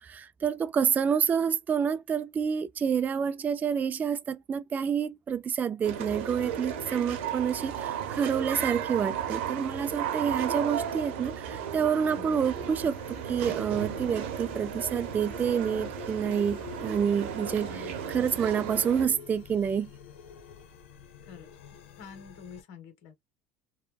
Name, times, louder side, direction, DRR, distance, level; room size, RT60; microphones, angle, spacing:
voice 1, 0.0-13.0 13.3-19.9, right 7 dB, 25° right, 0.3 m, -28 dB
sound 1, 5.8-19.1, right 8 dB, 85° right, 0.9 m, -34 dB
voice 2, 12.1-12.5 17.6-18.5 21.2-21.5 22.0-23.2, left 6 dB, 65° left, 1.1 m, -48 dB
sound 2, 12.3-22.6, left 8 dB, 90° left, 0.9 m, -48 dB
3.2 x 2.2 x 2.3 m
supercardioid pair, 95°, 6 cm